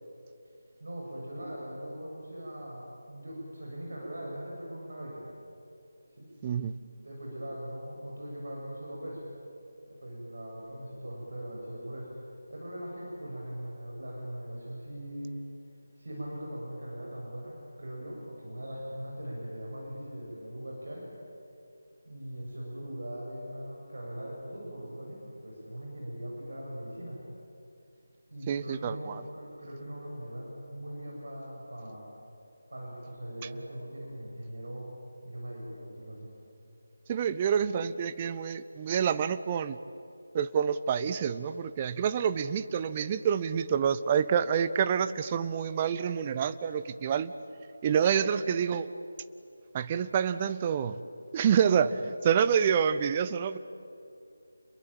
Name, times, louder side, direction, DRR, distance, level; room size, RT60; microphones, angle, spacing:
voice 1, 0.8-5.3 6.2-6.3 7.0-9.2 9.9-12.1 12.5-15.4 16.0-21.0 22.1-27.2 28.3-32.1 32.7-34.9 35.2-36.3, right 1 dB, 60° right, -3 dB, 7.8 m, -40 dB
voice 2, 6.4-6.8 28.5-29.2 37.1-39.8 40.3-47.3 47.8-48.9 49.7-51.0 51.3-53.6, right 7 dB, 20° right, 12 dB, 0.8 m, -27 dB
29.5 x 22.0 x 9.0 m, 2.5 s
figure-of-eight pair, 160°, 0 cm